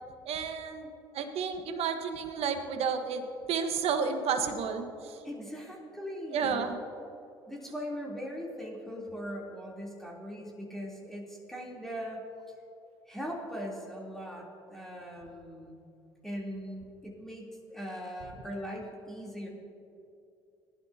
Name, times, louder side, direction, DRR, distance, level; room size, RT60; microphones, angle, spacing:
voice 1, 0.2-5.3 6.3-6.8, right 6 dB, 55° right, 7 dB, 1.3 m, -31 dB
voice 2, 5.2-6.7 7.5-12.2 13.1-15.8 16.2-19.5, equal, 5° left, -4 dB, 3.3 m, -40 dB
19.0 x 11.5 x 2.8 m, 2.6 s
hypercardioid pair, 65°, 12 cm